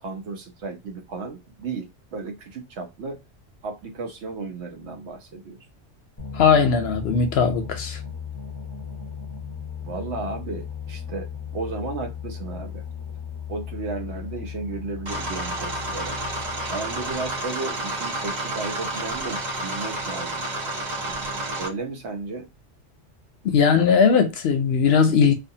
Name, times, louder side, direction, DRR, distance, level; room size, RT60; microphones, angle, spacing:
voice 1, 0.0-3.2 3.6-5.6 9.8-12.8 13.5-16.3 16.7-20.5 21.0-22.5, right 3 dB, 70° right, 1.0 m, -34 dB
sound 1, 6.2-17.5, left 7 dB, 40° left, 0.3 m, -36 dB
voice 2, 6.3-8.0 23.4-25.3, left 6 dB, 65° left, 0.7 m, -19 dB
sound 2, 15.1-21.7, right 2 dB, 40° right, 0.9 m, -30 dB
2.4 x 2.4 x 2.7 m
omnidirectional pair, 1.2 m